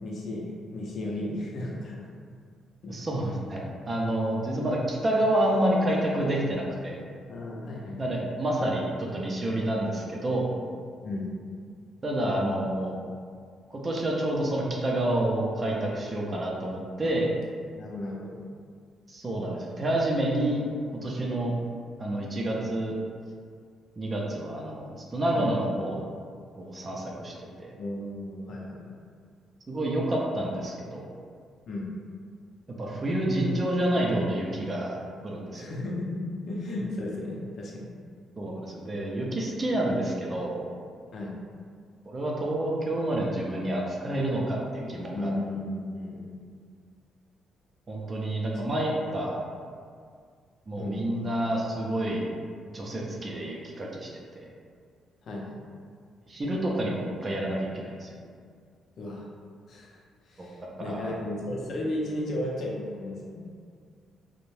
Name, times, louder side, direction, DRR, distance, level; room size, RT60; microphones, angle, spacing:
voice 1, 0.0-2.1 2.8-2.9 7.3-8.1 11.0-11.3 17.7-18.4 25.3-25.5 27.7-28.9 31.7-31.9 35.5-37.9 41.1-41.3 45.1-46.3 50.8-51.0 55.2-55.6 59.0-59.2 59.7-63.4, left 1 dB, 60° left, -3 dB, 0.5 m, -34 dB
voice 2, 2.9-7.0 8.0-10.5 12.0-13.0 13.7-17.3 19.1-20.6 21.0-21.5 22.0-22.9 24.0-26.0 26.6-27.7 29.7-31.1 32.8-35.0 35.2-35.7 38.4-40.7 42.1-45.3 47.9-49.4 50.7-52.3 52.7-54.4 56.3-58.1 60.4-60.5 60.9-61.1, right 1 dB, 35° right, -3 dB, 0.4 m, -28 dB
2.6 x 2.1 x 3.1 m, 2.1 s
cardioid pair, 90°, 0 cm